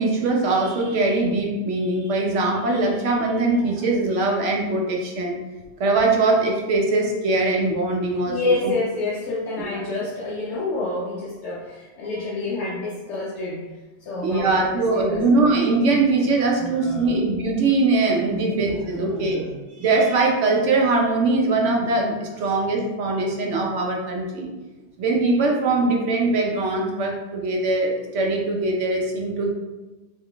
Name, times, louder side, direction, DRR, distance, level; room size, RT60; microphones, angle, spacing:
voice 1, 0.0-5.4 5.8-8.4 8.6-8.7 9.6-9.7 14.2-19.4 19.8-24.5 25.0-29.5, right 3 dB, 90° right, 0 dB, 1.1 m, -21 dB
voice 2, 8.3-13.7 14.0-15.2 16.6-17.2 18.3-19.6 22.4-22.5, left 3 dB, 75° left, -5 dB, 1.0 m, -29 dB
3.7 x 3.2 x 3.4 m, 1.2 s
omnidirectional pair, 1.2 m